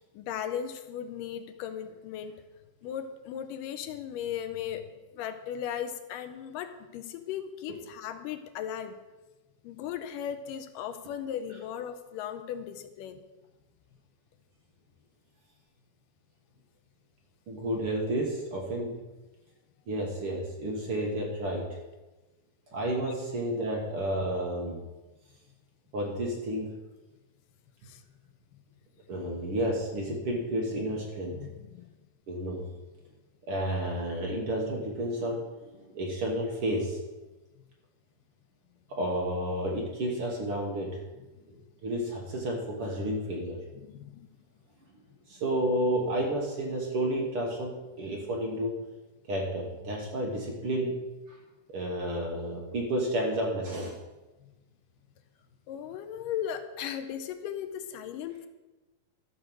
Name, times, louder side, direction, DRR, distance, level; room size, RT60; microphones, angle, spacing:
voice 1, 0.1-2.3 2.8-4.8 5.2-9.0 9.6-13.2 27.8-28.0 31.3-31.7 43.7-44.3 55.7-58.5, left 9 dB, 85° left, 9 dB, 2.2 m, -37 dB
voice 2, 17.5-19.0 19.9-21.7 22.7-24.8 25.9-26.8 29.1-31.4 32.3-32.7 33.5-37.0 38.9-41.0 41.8-43.6 45.3-48.8 49.3-51.0 51.7-54.0, right 1 dB, 50° right, -1 dB, 1.9 m, -31 dB
12.5 x 6.5 x 6.1 m, 1.1 s
omnidirectional pair, 4.0 m